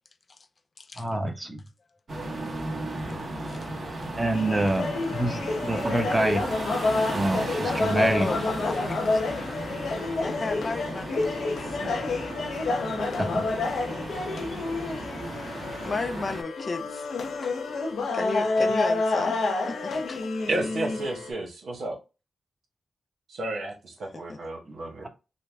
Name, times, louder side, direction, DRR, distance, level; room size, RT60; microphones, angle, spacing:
voice 1, 1.0-1.6 4.2-6.4 7.1-8.3 13.2-13.4 24.7-24.8, right 1 dB, 20° right, 1.1 m, -26 dB
sound 1, 2.1-16.4, right 2 dB, 50° right, 1.2 m, -35 dB
voice 2, 3.1-4.3 8.2-9.2 10.2-12.2 15.1-15.2 15.6-17.1 17.4-17.6 18.1-20.3 24.3-24.4, left 3 dB, 50° left, 0.6 m, -35 dB
sound 2, 4.3-21.3, left 3 dB, 85° left, 0.8 m, -29 dB
voice 3, 20.5-22.0 23.3-25.1, right 2 dB, 85° right, 1.3 m, -32 dB
3.9 x 2.3 x 3.4 m
cardioid pair, 60°, 0 cm